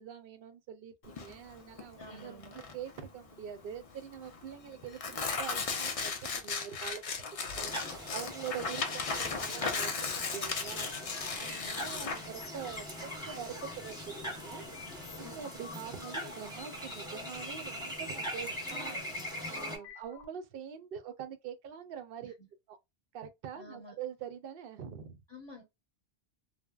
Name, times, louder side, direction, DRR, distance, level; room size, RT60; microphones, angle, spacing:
voice 1, 0.0-7.0 7.6-10.9 11.4-14.7 15.1-19.0 19.5-22.3 22.7-22.8 23.1-25.2, right 8 dB, 65° right, 0.7 m, -44 dB
Tearing, 1.1-15.3, left 5 dB, 45° left, 0.4 m, -37 dB
voice 2, 2.0-2.6 11.4-11.8 15.1-15.5 22.2-22.5 23.5-23.9 25.3-25.6, left 1 dB, 25° left, 0.9 m, -51 dB
sound 1, 7.6-19.8, equal, 5° right, 0.8 m, -42 dB
sound 2, 10.6-20.2, left 6 dB, 80° left, 1.0 m, -51 dB
3.3 x 2.0 x 2.2 m
omnidirectional pair, 1.1 m